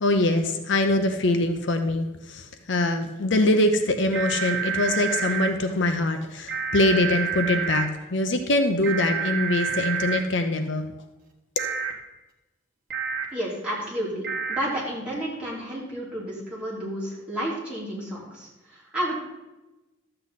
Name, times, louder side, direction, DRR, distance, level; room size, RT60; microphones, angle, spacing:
voice 1, 0.0-10.9, left 2 dB, 60° left, 7 dB, 0.6 m, -23 dB
sound 1, 4.1-5.5 6.5-7.8 8.8-10.2 11.6-11.9 12.9-13.2 14.2-14.6, right 7 dB, 45° right, 1.3 m, -28 dB
voice 2, 13.3-19.1, right 1 dB, 5° right, -8 dB, 3.1 m, -31 dB
12.5 x 7.7 x 4.1 m, 1.0 s
head